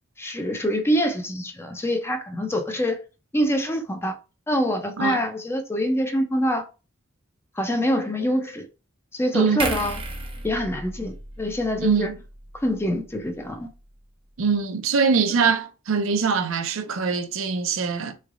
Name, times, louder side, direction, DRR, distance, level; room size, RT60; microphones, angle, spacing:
voice 1, 0.2-3.0 3.3-4.1 4.5-6.6 7.6-8.7 9.1-10.0 10.4-12.1 12.6-13.7 15.3-15.4, equal, 10° left, 0.5 m, -25 dB
sound 1, 9.6-13.0 13.3-13.5, right 2 dB, 25° right, 0.8 m, -34 dB
voice 2, 11.8-12.2 14.4-18.1, right 5 dB, 75° right, 0.5 m, -23 dB
3.7 x 3.2 x 2.5 m
head